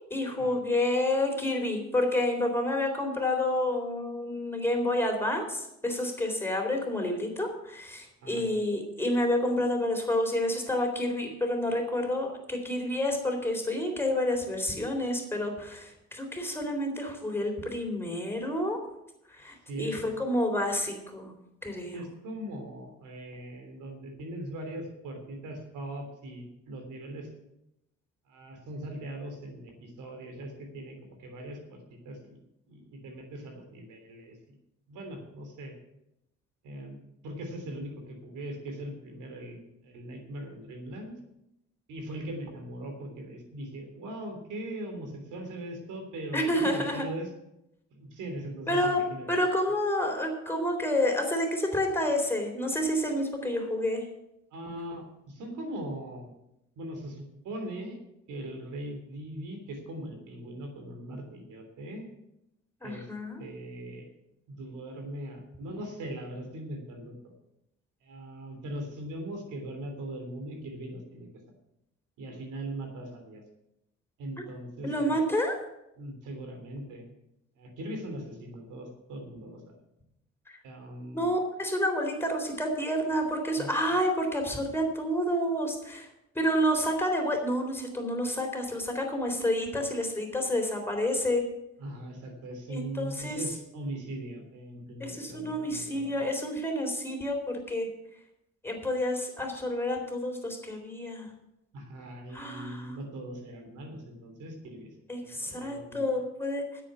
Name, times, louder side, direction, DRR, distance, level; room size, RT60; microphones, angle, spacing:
voice 1, 0.1-18.8 19.3-21.3 21.6-22.0 46.3-47.1 48.7-49.0 49.3-54.0 62.8-63.4 74.8-75.6 81.1-86.1 86.4-91.4 92.7-93.4 95.0-97.9 98.6-101.3 102.3-103.0 105.1-106.8, left 1 dB, 10° left, 2 dB, 3.8 m, -29 dB
voice 2, 19.7-20.0 21.9-27.3 28.3-32.4 32.7-34.5 34.9-35.7 36.6-41.1 41.9-47.3 47.9-49.3 54.5-56.3 56.7-58.0 58.3-62.1 62.8-63.0 63.4-64.0 64.5-67.3 68.0-71.3 72.2-73.4 74.2-75.1 76.0-77.1 77.6-79.6 80.6-81.2 83.6-83.7 91.8-96.2 101.7-104.9 105.2-106.0, right 1 dB, 85° right, 4 dB, 3.4 m, -40 dB
9.9 x 8.3 x 8.4 m, 0.84 s
cardioid pair, 90°, 30 cm